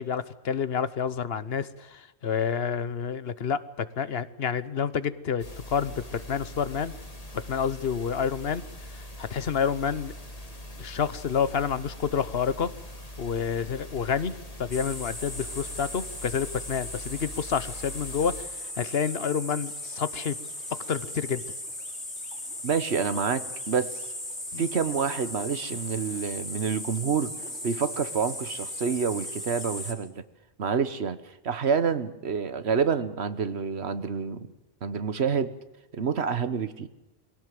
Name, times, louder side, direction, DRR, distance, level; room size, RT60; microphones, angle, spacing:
voice 1, 0.0-6.9 7.3-8.6 8.9-10.1 10.8-12.7 13.2-20.4 20.9-21.4 24.5-24.7, left 7 dB, 65° left, 15 dB, 1.2 m, -29 dB
sound 1, 5.4-18.4, equal, 35° left, 2.5 m, -43 dB
sound 2, 14.7-29.9, left 1 dB, 90° left, 5.1 m, -37 dB
voice 2, 22.6-24.1 24.6-27.3 27.6-30.2 30.6-34.5 34.8-35.5 35.9-36.9, right 6 dB, 75° right, 13 dB, 1.4 m, -28 dB
23.0 x 17.0 x 7.7 m, 1.0 s
omnidirectional pair, 1.1 m